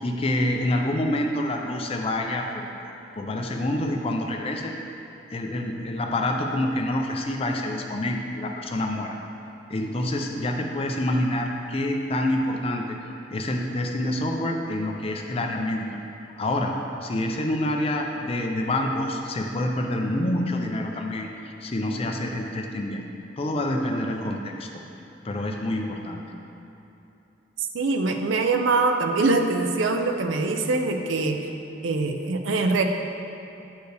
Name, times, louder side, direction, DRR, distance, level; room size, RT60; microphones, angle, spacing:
voice 1, 0.0-2.7 3.2-4.7 5.3-9.2 9.7-13.0 13.3-15.9 16.4-16.7 17.0-21.3 21.6-23.0 23.4-24.7 25.2-26.2, left 1 dB, 30° left, 2 dB, 0.5 m, -27 dB
voice 2, 27.6-31.4 31.8-32.8, right 3 dB, 90° right, 5 dB, 0.5 m, -23 dB
7.9 x 4.5 x 3.3 m, 2.9 s
head